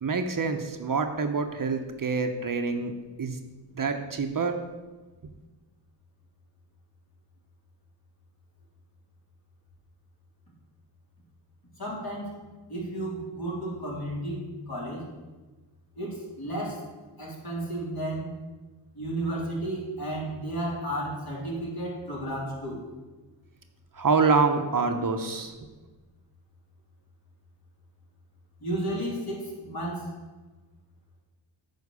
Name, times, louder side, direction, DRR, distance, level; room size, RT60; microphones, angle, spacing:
voice 1, 0.0-2.9 3.2-3.4 3.7-4.6 23.9-25.5, right 4 dB, 45° right, 6 dB, 0.9 m, -26 dB
voice 2, 11.8-12.4 12.7-14.4 14.7-15.1 16.0-16.8 17.2-18.3 19.0-22.8 28.6-30.1, right 1 dB, 55° left, -4 dB, 3.5 m, -33 dB
9.7 x 4.5 x 6.8 m, 1.2 s
cardioid pair, 65°, 45 cm